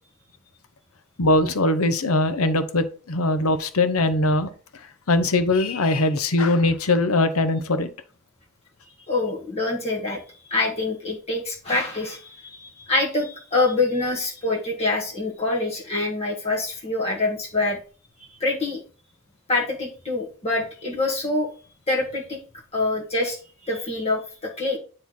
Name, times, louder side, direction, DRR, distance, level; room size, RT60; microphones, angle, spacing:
voice 1, 1.2-4.5 5.1-7.9, left 2 dB, 85° left, 11 dB, 0.8 m, -21 dB
voice 2, 9.1-10.2 10.5-17.8 18.4-18.8 19.5-21.5 21.9-22.4 22.7-24.8, left 2 dB, 30° left, -3 dB, 1.4 m, -25 dB
9.4 x 3.3 x 4.2 m, 0.39 s
head